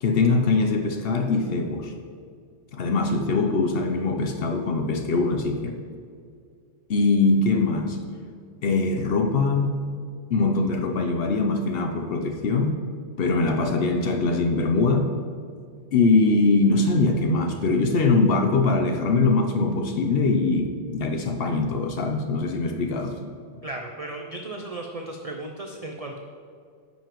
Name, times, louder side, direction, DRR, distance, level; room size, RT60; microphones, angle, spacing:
voice 1, 0.0-1.9 2.7-5.8 6.9-8.0 8.6-9.8 10.3-12.8 13.2-15.1 15.9-23.2, left 3 dB, 60° left, 4 dB, 0.7 m, -22 dB
voice 2, 23.6-26.2, right 2 dB, 65° right, 2 dB, 0.3 m, -35 dB
9.8 x 5.4 x 3.0 m, 2.2 s
omnidirectional pair, 1.3 m